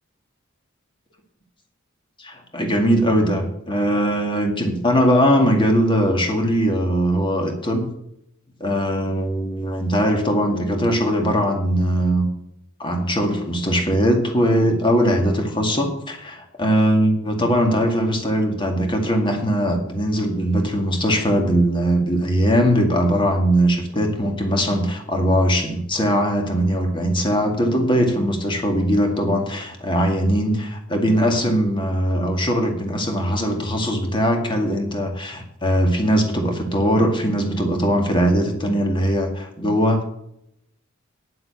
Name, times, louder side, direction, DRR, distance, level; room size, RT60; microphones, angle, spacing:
voice 1, 2.2-7.9 8.6-12.3 12.8-40.1, equal, 25° left, 3 dB, 2.1 m, -20 dB
10.0 x 7.7 x 7.0 m, 0.79 s
head